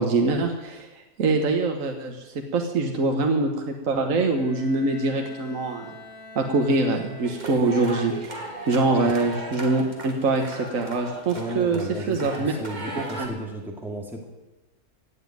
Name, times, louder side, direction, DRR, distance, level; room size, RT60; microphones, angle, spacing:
voice 1, 0.0-6.0 6.3-8.4 8.7-12.5 13.2-13.3, right 3 dB, 60° right, 4 dB, 1.6 m, -24 dB
Bowed string instrument, 4.1-7.8, left 2 dB, 25° left, 3.2 m, -45 dB
sound 1, 7.2-13.3, right 1 dB, 30° right, 2.4 m, -36 dB
voice 2, 11.3-14.2, right 1 dB, ahead, 1 dB, 2.0 m, -34 dB
16.5 x 7.4 x 9.4 m, 1.1 s
omnidirectional pair, 1.6 m